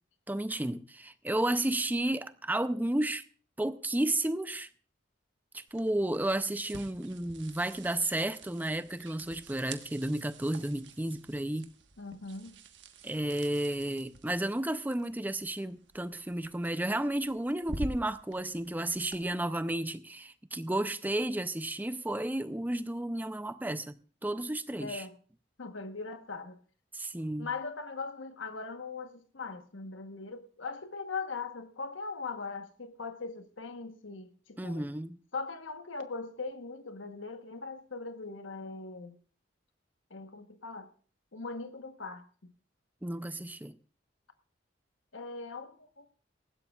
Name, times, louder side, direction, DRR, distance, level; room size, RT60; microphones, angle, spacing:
voice 1, 0.3-3.2 3.6-4.7 5.5-11.7 13.0-23.9 24.2-25.0 26.9-27.5 34.6-35.2 43.0-43.8, right 1 dB, 10° right, 0.5 m, -32 dB
sound 1, 5.7-19.2, right 2 dB, 65° right, 1.3 m, -48 dB
voice 2, 12.0-12.6 24.8-25.2 25.6-26.6 27.4-34.8 35.3-39.2 40.1-40.9 41.3-42.5 45.1-46.1, left 4 dB, 85° left, 1.1 m, -40 dB
19.0 x 15.5 x 2.4 m
head